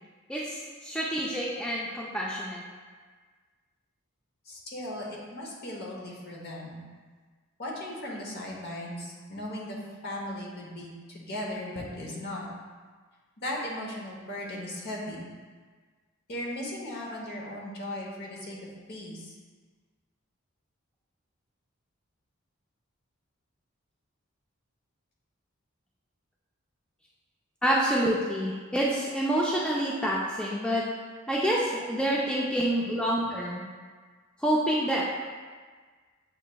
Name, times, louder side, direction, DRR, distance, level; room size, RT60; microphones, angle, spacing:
voice 1, 0.3-2.6 27.6-30.8 31.3-33.6 34.4-35.0, right 1 dB, 5° left, -5 dB, 0.3 m, -27 dB
voice 2, 4.5-6.8 7.6-9.8 10.0-12.5 13.4-15.3 16.3-19.3, left 1 dB, 50° left, -3 dB, 0.8 m, -37 dB
6.6 x 3.1 x 2.2 m, 1.5 s
head